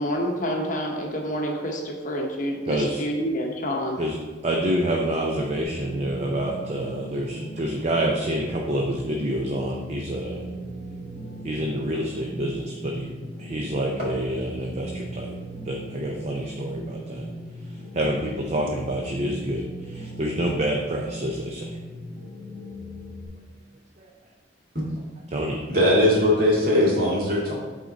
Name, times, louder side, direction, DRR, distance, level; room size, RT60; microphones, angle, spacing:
voice 1, 0.0-4.0, equal, 45° left, 0 dB, 1.0 m, -28 dB
voice 2, 2.7-3.0 4.0-4.2 4.4-10.5 11.4-15.3 15.6-17.3 17.9-21.8 24.0-24.1 25.3-25.6, right 1 dB, 35° right, 0 dB, 0.5 m, -27 dB
sound 1, 5.6-23.2, right 1 dB, 10° left, 1.6 m, -38 dB
voice 3, 25.7-27.5, left 1 dB, 55° right, -5 dB, 2.0 m, -19 dB
8.0 x 3.9 x 4.0 m, 1.3 s
head